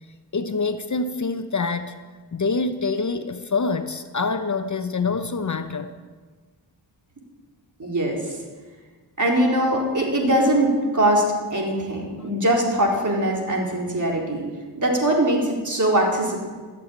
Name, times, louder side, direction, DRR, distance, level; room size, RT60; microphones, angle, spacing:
voice 1, 0.3-1.9 2.3-5.9, left 4 dB, 45° left, 9 dB, 0.9 m, -25 dB
voice 2, 7.8-8.4 9.2-11.2 11.5-14.5 14.8-16.4, right 1 dB, 45° right, -1 dB, 4.2 m, -21 dB
14.5 x 7.8 x 8.8 m, 1.4 s
cardioid pair, 50°, 42 cm